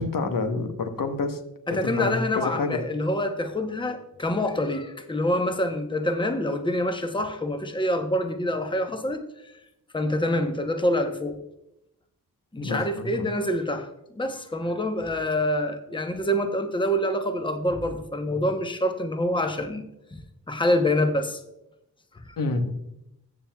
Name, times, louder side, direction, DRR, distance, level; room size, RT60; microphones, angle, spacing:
voice 1, 0.0-1.4 1.7-2.8 12.6-13.3 22.4-22.7, left 3 dB, 65° left, 6 dB, 1.1 m, -28 dB
voice 2, 1.7-9.2 9.9-11.4 12.5-13.9 14.1-20.2 20.5-21.4 22.3-22.4, left 1 dB, 15° left, 7 dB, 0.9 m, -26 dB
14.5 x 7.4 x 2.3 m, 0.85 s
cardioid pair, 65°, 36 cm